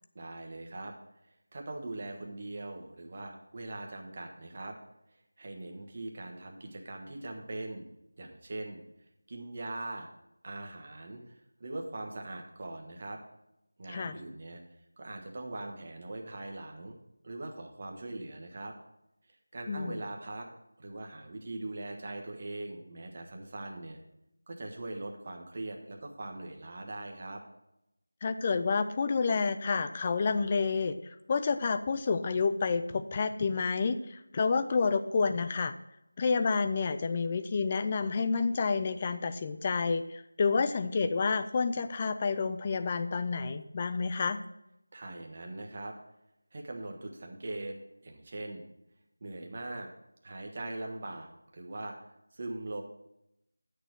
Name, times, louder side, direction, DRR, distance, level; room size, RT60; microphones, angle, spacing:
voice 1, 0.1-0.9 1.5-4.8 5.1-7.8 8.2-8.8 9.3-10.1 10.4-13.2 13.8-14.6 15.0-17.0 17.2-18.7 19.2-20.5 20.8-24.0 24.5-27.4 44.9-45.9 46.5-47.8 48.0-48.6 49.2-49.9 50.2-52.0 52.3-52.8, right 2 dB, 30° right, 2 dB, 1.2 m, -41 dB
voice 2, 19.7-20.0 28.2-35.7 36.2-44.4, left 4 dB, 20° left, 10 dB, 0.3 m, -29 dB
10.0 x 6.6 x 4.6 m, 0.85 s
figure-of-eight pair, 175°, 0 cm